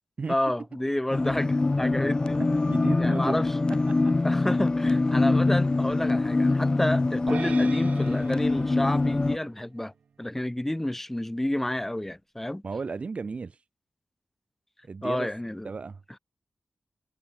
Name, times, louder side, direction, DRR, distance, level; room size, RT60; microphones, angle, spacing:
voice 1, 0.3-2.4 3.0-3.5 4.2-9.9 10.2-12.6 15.0-15.7, left 1 dB, 10° left, 7.1 m, -30 dB
sound 1, 1.1-9.4, left 2 dB, 30° left, 1.6 m, -24 dB
voice 2, 2.6-3.4 3.9-4.1 12.6-13.6 14.8-15.3 15.6-16.0, right 4 dB, 55° right, 2.6 m, -34 dB
sound 2, 7.3-9.8, right 6 dB, 80° right, 2.2 m, -41 dB
wide cardioid pair, 90°, 2 cm